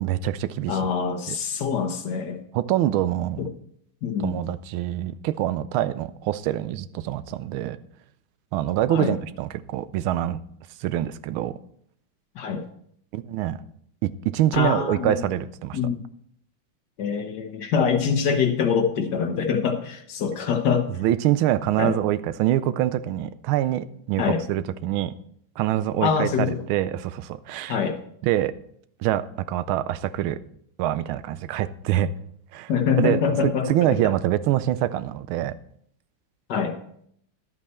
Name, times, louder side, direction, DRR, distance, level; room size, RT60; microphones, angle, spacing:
voice 1, 0.0-0.8 2.5-3.4 4.2-7.8 8.5-10.4 10.8-11.5 13.1-13.6 14.0-15.8 21.0-25.1 25.6-27.8 28.2-28.5 29.0-30.4 30.8-32.1 32.5-32.7 33.0-35.6, right 13 dB, 85° right, 15 dB, 1.4 m, -25 dB
voice 2, 0.7-2.4 3.4-3.5 4.0-4.4 8.9-9.1 12.3-12.7 14.5-15.3 15.7-16.0 17.0-20.9 21.8-22.0 24.2-24.4 26.0-26.6 27.7-28.0 32.7-33.7 36.5-36.8, left 6 dB, 60° left, 7 dB, 1.4 m, -24 dB
11.5 x 8.5 x 4.3 m, 0.68 s
omnidirectional pair, 2.2 m